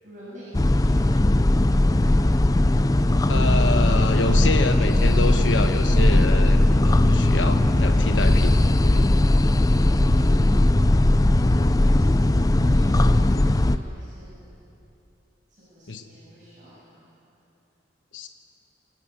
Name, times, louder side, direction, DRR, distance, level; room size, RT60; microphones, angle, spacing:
voice 1, 0.0-1.3 10.8-14.4 15.5-17.0, equal, 45° right, -9 dB, 7.3 m, -47 dB
sound 1, 0.5-13.8, left 1 dB, 20° left, 0.5 m, -18 dB
voice 2, 3.3-8.5 8.8-9.0 15.9-16.0 18.1-18.3, left 3 dB, 85° left, 6 dB, 1.2 m, -27 dB
24.5 x 14.0 x 8.9 m, 2.9 s
head